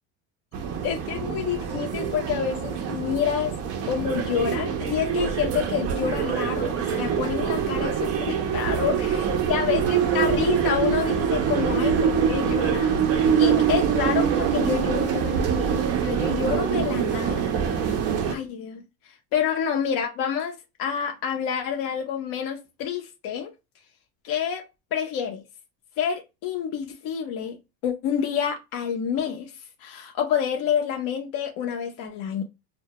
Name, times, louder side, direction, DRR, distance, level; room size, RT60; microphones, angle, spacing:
sound 1, 0.5-18.4, right 7 dB, 35° right, 0.4 m, -24 dB
voice 1, 0.8-3.5 3.8-8.9 9.5-17.5 18.2-18.8 19.3-23.5 24.2-24.6 24.9-25.4 26.0-27.6 27.8-29.5 29.8-32.4, left 8 dB, 45° left, 0.6 m, -28 dB
2.1 x 2.1 x 2.7 m
supercardioid pair, 115°, 48 cm